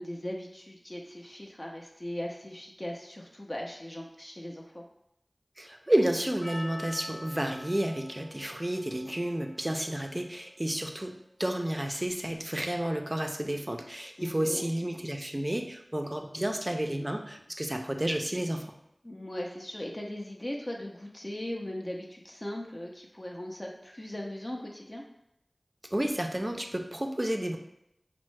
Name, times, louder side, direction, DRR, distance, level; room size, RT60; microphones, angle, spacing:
voice 1, 0.0-4.8 14.2-14.6 19.0-25.0, left 1 dB, 35° left, -1 dB, 0.4 m, -39 dB
voice 2, 5.6-18.7 25.9-27.6, right 1 dB, 25° right, 4 dB, 0.4 m, -31 dB
Percussion, 6.4-11.0, left 1 dB, 60° left, 0.8 m, -46 dB
4.3 x 2.0 x 3.1 m, 0.80 s
wide cardioid pair, 50°, 0 cm